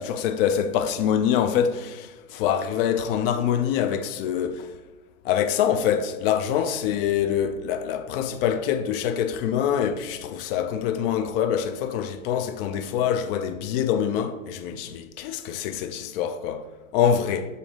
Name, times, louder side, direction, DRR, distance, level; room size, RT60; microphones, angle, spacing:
voice 1, 0.0-4.7 5.2-17.5, left 8 dB, 45° left, 0.5 m, -25 dB
7.2 x 2.7 x 5.0 m
hypercardioid pair, 115°, 42 cm